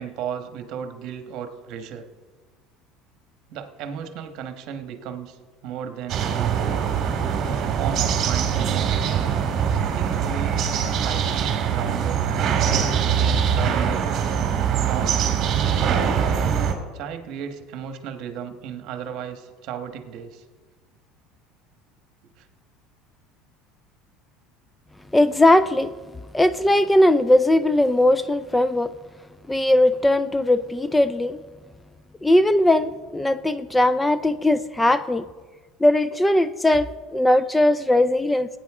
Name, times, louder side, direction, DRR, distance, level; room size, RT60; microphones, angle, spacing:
voice 1, 0.0-2.1 3.5-6.5 7.4-9.0 9.7-10.6 11.0-14.1 14.8-15.3 16.9-20.4 22.4-22.5, right 8 dB, 60° right, 7 dB, 1.3 m, -35 dB
sound 1, 6.1-16.7, right 7 dB, 45° right, 2.2 m, -23 dB
voice 2, 25.1-25.9 26.3-28.9 29.5-31.4 32.2-35.2 35.8-38.5, left 1 dB, 10° left, 14 dB, 0.4 m, -19 dB
17.5 x 9.4 x 3.6 m, 1.4 s
supercardioid pair, 120°, 0 cm